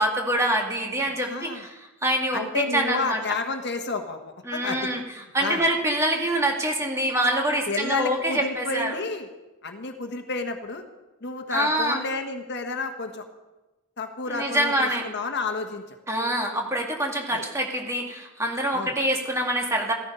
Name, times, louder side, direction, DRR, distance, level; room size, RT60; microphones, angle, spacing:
voice 1, 0.0-3.2 4.5-5.0 5.3-9.0 11.5-12.0 14.3-15.0 16.1-19.9, right 1 dB, 15° right, 1 dB, 2.2 m, -25 dB
voice 2, 1.2-1.6 2.3-4.2 4.5-4.9 5.4-5.6 7.7-9.3 9.6-10.8 11.2-13.2 14.0-16.0 17.3-17.4 18.7-18.9, left 3 dB, 55° left, 6 dB, 1.3 m, -30 dB
15.0 x 14.0 x 5.5 m, 1.0 s
head